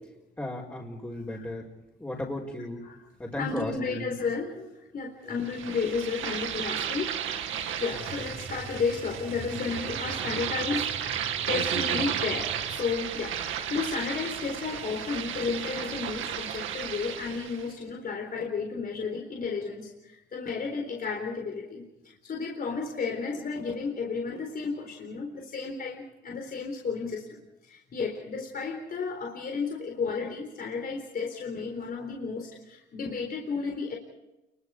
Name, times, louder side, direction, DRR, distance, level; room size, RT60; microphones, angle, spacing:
voice 1, 0.4-1.7 2.0-2.9 3.2-4.1 5.3-5.4 7.9-8.0, left 1 dB, 10° left, -3 dB, 5.0 m, -35 dB
voice 2, 3.4-7.1 7.8-11.2 11.5-33.9, left 5 dB, 50° left, 1 dB, 4.0 m, -33 dB
sound 1, 5.4-17.7, right 9 dB, 85° right, 2.2 m, -33 dB
sound 2, 8.1-12.8, right 4 dB, 30° right, 1.8 m, -43 dB
29.5 x 23.0 x 5.0 m, 0.97 s
cardioid pair, 90°, 20 cm